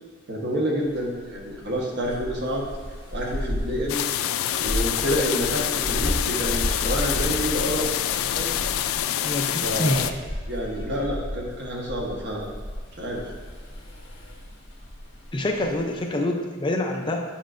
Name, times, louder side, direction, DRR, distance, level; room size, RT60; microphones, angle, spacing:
voice 1, 0.3-2.7 3.1-4.0 4.5-8.5 9.6-10.1 10.5-12.5 12.9-13.3, equal, 55° right, -2 dB, 1.2 m, -28 dB
sound 1, 0.8-16.2, equal, 60° left, 1.5 m, -34 dB
sound 2, 3.9-10.1, left 11 dB, 80° left, 0.3 m, -26 dB
voice 2, 9.2-10.1 15.3-17.2, left 1 dB, 25° left, 2 dB, 0.5 m, -26 dB
7.4 x 6.6 x 2.5 m, 1.4 s
head